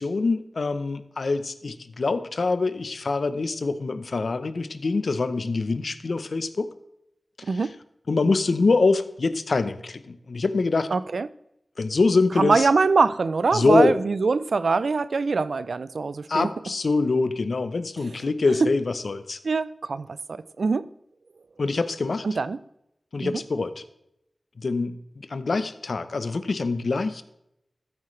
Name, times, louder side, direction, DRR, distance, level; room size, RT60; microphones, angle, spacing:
voice 1, 0.0-6.7 8.1-10.9 11.8-12.7 13.5-13.9 16.3-19.4 21.6-22.2 23.1-23.8 24.6-27.2, left 3 dB, 70° left, 0.8 m, -24 dB
voice 2, 10.9-11.3 12.4-16.5 18.6-18.7 19.4-20.9 22.2-22.6 23.2-23.4, right 4 dB, 80° right, 0.5 m, -23 dB
14.0 x 9.6 x 3.3 m
wide cardioid pair, 70°, 0 cm